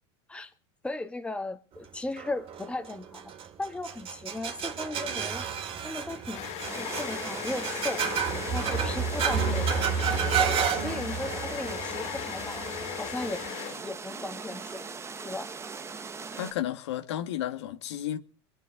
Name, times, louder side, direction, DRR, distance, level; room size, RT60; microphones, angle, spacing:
voice 1, 0.8-3.3 3.6-5.4 5.8-8.0 8.4-9.8 10.7-12.7 13.0-13.4 13.8-14.9 15.2-15.6, left 2 dB, 10° left, 1.8 m, -36 dB
sound 1, 2.2-13.5, right 7 dB, 40° right, 2.5 m, -31 dB
sound 2, 5.5-14.2, left 15 dB, 50° left, 0.9 m, -38 dB
sound 3, 6.6-16.5, right 5 dB, 20° right, 1.2 m, -40 dB
voice 2, 16.3-18.2, left 11 dB, 90° left, 1.9 m, -32 dB
23.0 x 9.3 x 4.8 m
supercardioid pair, 115°, 14 cm